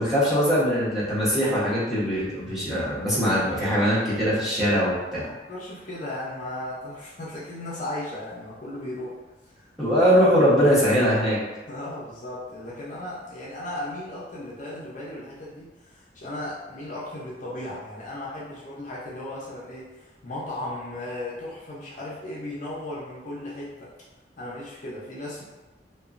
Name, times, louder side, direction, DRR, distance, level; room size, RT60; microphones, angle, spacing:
voice 1, 0.0-5.3 9.8-11.4, equal, ahead, -11 dB, 0.9 m, -21 dB
voice 2, 3.2-3.9 5.2-9.1 9.6-9.7 11.7-23.9 24.4-25.4, left 1 dB, 45° left, -7 dB, 0.6 m, -36 dB
2.9 x 2.2 x 2.4 m, 1.1 s
head